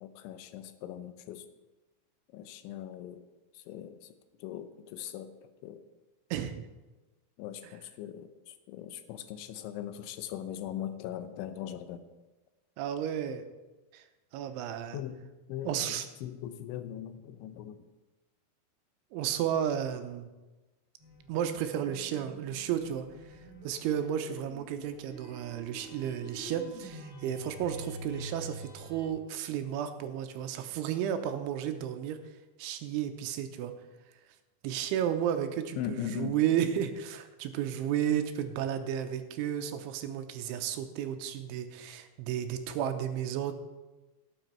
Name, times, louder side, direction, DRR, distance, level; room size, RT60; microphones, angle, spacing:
voice 1, 0.0-1.5 2.3-3.2 3.5-4.1 4.4-5.3 5.6-5.8 7.4-12.0 14.9-15.2 15.5-17.8 35.8-36.4, left 11 dB, 80° left, 10 dB, 3.2 m, -40 dB
voice 2, 6.3-6.7 7.6-7.7 12.8-13.4 13.9-14.0 14.3-15.0 15.6-16.1 19.1-20.3 21.3-23.1 23.6-32.2 32.6-33.7 34.6-43.5, right 9 dB, 90° right, 8 dB, 3.3 m, -33 dB
sound 1, 21.0-29.1, equal, 45° left, 5.3 m, -47 dB
17.5 x 9.0 x 4.5 m, 1.1 s
omnidirectional pair, 5.4 m